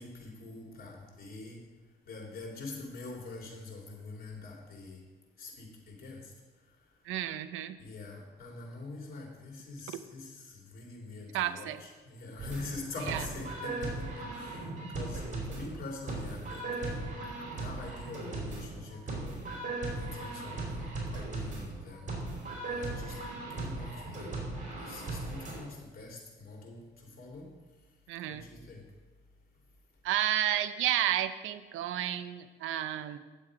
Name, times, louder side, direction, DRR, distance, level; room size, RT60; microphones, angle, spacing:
voice 1, 0.0-1.6 2.0-5.0 5.4-6.3 7.8-17.1 17.5-19.4 19.8-23.2 23.5-24.4 24.8-27.5 28.3-28.9, left 3 dB, 50° left, 0 dB, 2.9 m, -44 dB
voice 2, 7.0-7.8 9.9-10.0 11.3-11.8 13.1-13.2 28.1-28.5 30.0-33.2, right 12 dB, 90° right, 13 dB, 0.6 m, -31 dB
sound 1, 12.4-25.6, right 2 dB, 40° right, 3.4 m, -38 dB
9.2 x 7.5 x 4.9 m, 1.2 s
cardioid pair, 90°, 20 cm